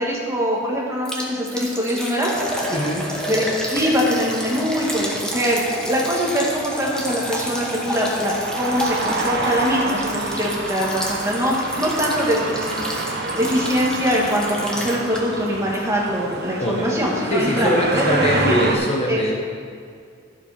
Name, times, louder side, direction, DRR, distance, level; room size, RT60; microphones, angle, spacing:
voice 1, 0.0-2.3 3.3-12.9 13.4-18.1 18.5-18.8 19.1-19.3, equal, 15° right, -4 dB, 1.9 m, -23 dB
Liquid, 1.1-15.5 15.7-15.8 16.3-16.4, equal, 5° left, 1.2 m, -30 dB
sound 1, 2.3-18.8, right 3 dB, 55° right, 1.0 m, -29 dB
voice 2, 2.7-3.1 16.6-17.0 17.3-19.3, equal, 30° left, -1 dB, 1.1 m, -21 dB
12.5 x 7.4 x 5.1 m, 2.2 s
head